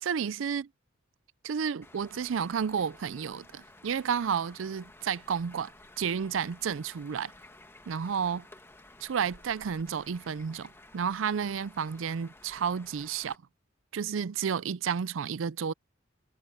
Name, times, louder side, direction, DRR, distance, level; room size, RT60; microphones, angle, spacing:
voice 1, 0.0-0.7 1.4-5.7 6.0-7.3 7.9-8.5 9.0-13.4 13.9-15.7, right 7 dB, 75° right, 0.4 m, -31 dB
sound 1, 1.8-13.4, left 2 dB, 15° left, 1.5 m, -54 dB
head